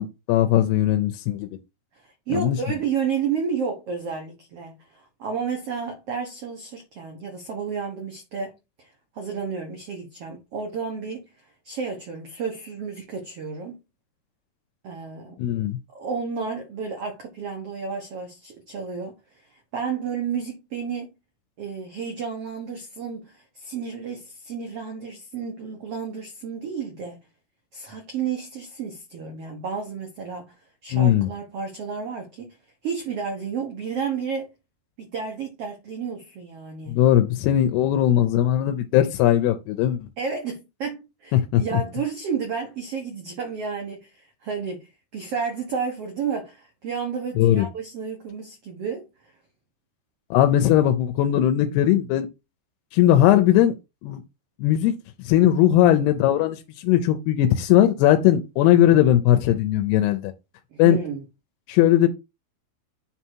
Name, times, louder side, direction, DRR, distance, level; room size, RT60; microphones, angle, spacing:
voice 1, 0.0-1.5 2.3-2.6 15.4-15.8 30.9-31.3 36.9-40.1 41.3-41.6 47.4-47.7 50.3-52.3 52.9-53.7 54.0-54.2 54.6-54.9 55.3-60.3 60.8-61.0 61.7-62.1, left 12 dB, 90° left, 2.8 m, -19 dB
voice 2, 2.0-8.5 8.8-11.3 11.6-13.8 14.8-15.4 15.9-19.1 19.5-21.1 21.6-27.2 27.7-30.5 30.8-32.6 32.8-34.5 35.0-37.0 40.2-49.1 60.7-61.2, right 6 dB, 70° right, 1.4 m, -31 dB
9.6 x 3.5 x 4.6 m
omnidirectional pair, 4.5 m